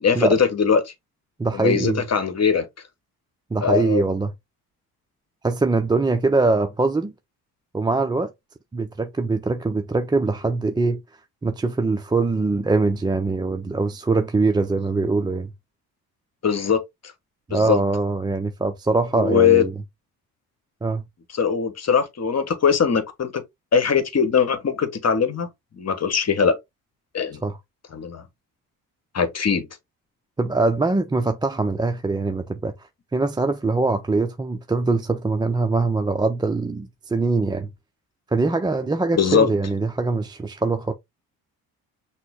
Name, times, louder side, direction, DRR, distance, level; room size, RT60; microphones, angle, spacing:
voice 1, 0.0-0.9 1.5-2.7 3.6-4.0 16.4-16.8 17.5-17.8 19.1-19.7 21.3-23.4 23.7-25.5 25.7-26.6 27.1-27.4 27.9-28.2 29.1-29.7 39.1-39.5, left 6 dB, 35° left, 1.2 m, -20 dB
voice 2, 1.4-2.0 3.5-4.3 5.4-7.1 7.7-8.3 8.7-11.0 11.4-15.5 17.5-19.7 20.8-21.0 27.4-27.6 30.4-32.7 33.1-37.7 38.3-40.9, right 3 dB, 10° right, 0.4 m, -22 dB
5.9 x 2.1 x 3.6 m
hypercardioid pair, 50°, 44 cm